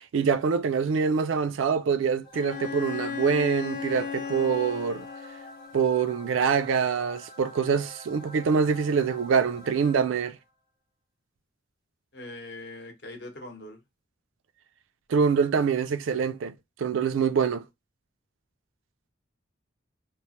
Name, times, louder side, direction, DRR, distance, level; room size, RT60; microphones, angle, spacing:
voice 1, 0.1-5.1 5.7-10.4 15.1-16.5 16.8-17.6, right 6 dB, 80° right, 0.3 m, -25 dB
sound 1, 2.2-10.5, equal, 20° left, 0.8 m, -48 dB
Bowed string instrument, 2.3-5.8, left 7 dB, 40° left, 0.4 m, -36 dB
voice 2, 12.1-13.8, left 2 dB, 55° left, 0.8 m, -41 dB
3.0 x 2.0 x 2.8 m
head